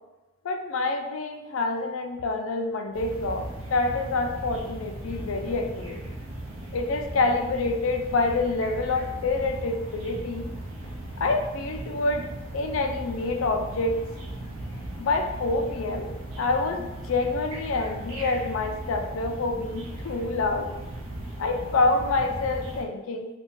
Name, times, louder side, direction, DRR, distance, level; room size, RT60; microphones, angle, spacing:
voice 1, 0.4-6.0 6.7-10.4 11.2-12.3 12.5-14.0 15.0-16.1 16.4-20.7 21.4-23.3, left 3 dB, 90° left, 5 dB, 0.4 m, -27 dB
sound 1, 2.9-22.8, right 1 dB, 85° right, 0.6 m, -37 dB
2.7 x 2.2 x 3.7 m, 1.1 s
head